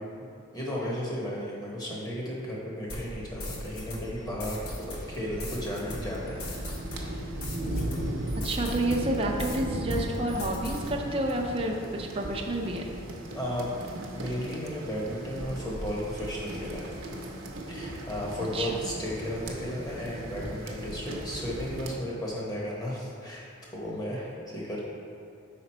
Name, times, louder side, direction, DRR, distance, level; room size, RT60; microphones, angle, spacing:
voice 1, 0.5-6.4 7.0-7.2 13.3-13.7 14.1-16.9 17.7-23.4 23.7-24.8, equal, 15° left, -5 dB, 1.1 m, -34 dB
sound 1, 2.9-9.6 9.9-10.9, left 1 dB, 75° left, 1.0 m, -39 dB
sound 2, 5.0-21.9, right 1 dB, 60° right, 0.8 m, -37 dB
voice 2, 8.4-12.8 18.5-18.8, right 1 dB, 25° right, 0 dB, 0.5 m, -29 dB
6.0 x 5.0 x 4.3 m, 2.5 s
head